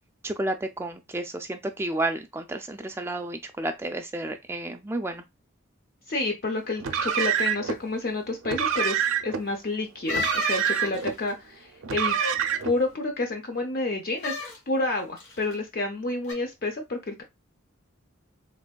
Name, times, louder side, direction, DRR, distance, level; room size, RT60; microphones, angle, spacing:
voice 1, 0.2-5.2, right 2 dB, 10° right, 0.3 m, -31 dB
voice 2, 6.1-12.2 12.6-14.4 14.7-17.2, left 2 dB, 45° left, 0.5 m, -29 dB
Car, 6.8-7.8 8.4-9.4 10.1-11.1 11.8-12.8, right 8 dB, 70° right, 0.5 m, -26 dB
sound 1, 10.1-11.3 14.2-14.6 15.2-15.5 16.2-16.3, left 4 dB, 80° left, 1.8 m, -33 dB
3.4 x 3.3 x 2.2 m
head